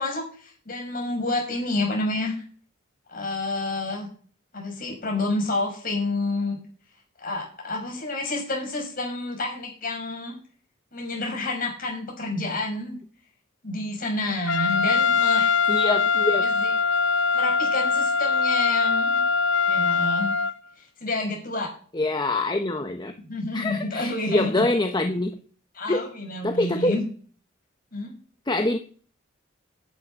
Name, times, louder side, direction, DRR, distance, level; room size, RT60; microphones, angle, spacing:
voice 1, 0.0-2.4 3.1-4.1 4.5-6.6 7.2-10.4 10.9-13.0 13.6-15.4 16.4-16.7 17.3-19.2 19.7-20.3 20.8-21.7 23.3-24.6 25.7-27.0 27.9-28.1, left 2 dB, 45° left, 1 dB, 6.3 m, -29 dB
Trumpet, 14.5-20.5, left 5 dB, 65° left, 0.8 m, -22 dB
voice 2, 15.3-16.5 21.9-23.1 23.5-25.4 25.9-26.1 26.4-27.0 28.5-28.8, left 2 dB, 20° left, 6 dB, 0.9 m, -25 dB
10.5 x 9.3 x 6.4 m, 0.43 s
head